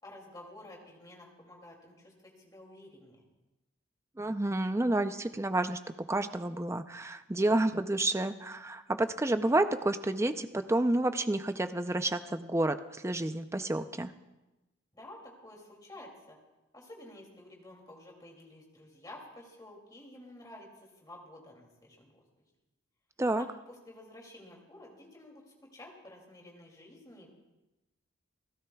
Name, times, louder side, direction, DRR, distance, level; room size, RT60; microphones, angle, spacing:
voice 1, 0.0-3.3 14.9-16.4 16.7-22.2 23.4-25.4 25.7-27.4, left 1 dB, 15° left, -1 dB, 2.5 m, -51 dB
voice 2, 4.2-5.8 6.1-14.1 23.2-23.4, right 2 dB, 15° right, 9 dB, 0.4 m, -30 dB
29.0 x 13.5 x 2.3 m, 1.0 s
head